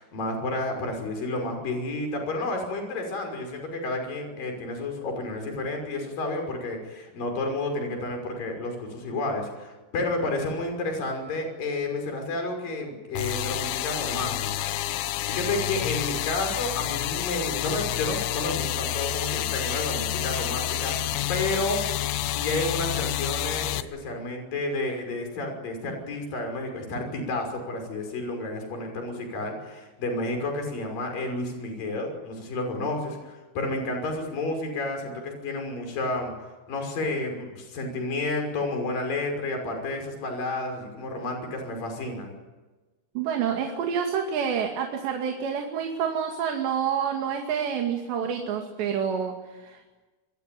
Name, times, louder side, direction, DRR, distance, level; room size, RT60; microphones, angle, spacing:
voice 1, 0.0-14.7 15.0-21.0 21.3-42.3, left 2 dB, 50° left, 4 dB, 7.4 m, -31 dB
sound 1, 13.2-23.8, left 12 dB, 90° left, 3.4 m, -29 dB
voice 2, 43.2-49.8, right 7 dB, 70° right, 3 dB, 4.5 m, -28 dB
28.5 x 22.5 x 9.3 m, 1.2 s
omnidirectional pair, 5.2 m